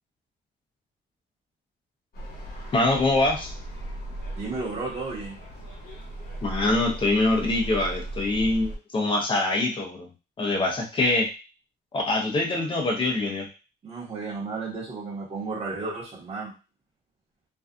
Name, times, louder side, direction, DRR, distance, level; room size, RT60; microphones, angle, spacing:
sound 1, 2.1-8.8, right 1 dB, 50° left, 1.0 m, -37 dB
voice 1, 2.7-3.5 6.4-10.1 10.4-11.3 11.9-13.5, left 2 dB, 25° left, 1 dB, 0.6 m, -24 dB
voice 2, 4.3-5.4 13.8-16.5, right 3 dB, 35° right, -5 dB, 1.0 m, -33 dB
2.5 x 2.3 x 2.4 m, 0.31 s
cardioid pair, 155°, 19 cm